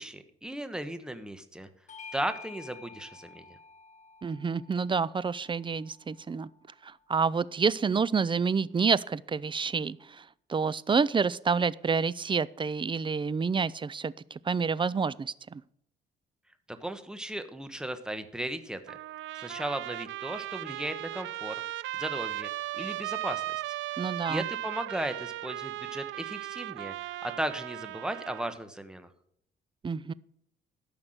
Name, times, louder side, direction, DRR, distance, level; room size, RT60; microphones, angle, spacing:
voice 1, 0.0-1.7 2.1-3.6 16.7-19.0 19.3-21.6 21.9-22.5 22.8-23.8 24.3-29.1, right 1 dB, 5° right, 9 dB, 1.2 m, -36 dB
Bell / Doorbell, 1.9-6.7, left 5 dB, 40° left, 1.4 m, -50 dB
voice 2, 4.2-6.5 6.8-15.6 24.0-24.5 29.8-30.1, right 5 dB, 25° right, 20 dB, 0.5 m, -28 dB
Trumpet, 18.9-28.6, right 14 dB, 75° right, 0.5 m, -37 dB
13.0 x 5.9 x 8.0 m, 0.69 s
cardioid pair, 90°, 20 cm